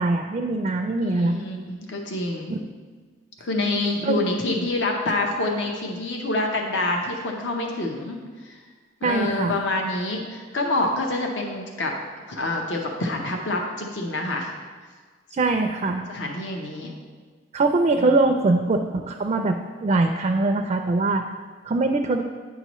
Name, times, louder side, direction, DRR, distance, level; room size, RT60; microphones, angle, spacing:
voice 1, 0.0-1.4 2.5-2.6 4.0-4.2 9.0-9.5 15.4-16.0 17.5-21.2 21.7-22.2, right 2 dB, 35° right, 4 dB, 0.4 m, -22 dB
voice 2, 1.0-2.5 3.4-8.2 8.4-8.6 9.0-11.9 12.3-14.5 16.1-16.9 17.9-18.1, left 2 dB, 70° left, 1 dB, 0.8 m, -27 dB
9.2 x 5.6 x 3.0 m, 1.5 s
head